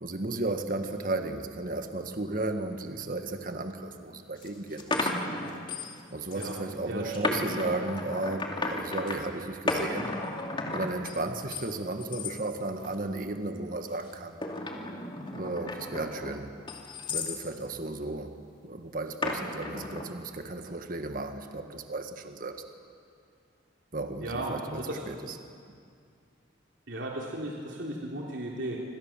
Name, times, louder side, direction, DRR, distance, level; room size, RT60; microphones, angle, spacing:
voice 1, 0.0-5.1 6.1-10.1 10.7-14.4 15.3-16.5 17.1-18.3 18.6-22.6 23.9-25.4, right 2 dB, 45° right, 6 dB, 1.6 m, -34 dB
sound 1, 3.8-3.9 4.4-6.0 6.3-6.6 7.1-9.2 9.7-11.7 12.0-12.4 12.8-13.2 14.0-17.4 19.2-20.1, left 2 dB, 25° left, 2.5 m, -34 dB
voice 2, 6.9-7.5 24.2-25.0 26.9-28.8, right 1 dB, 65° right, -2 dB, 3.3 m, -35 dB
27.0 x 26.0 x 7.4 m, 2.2 s
head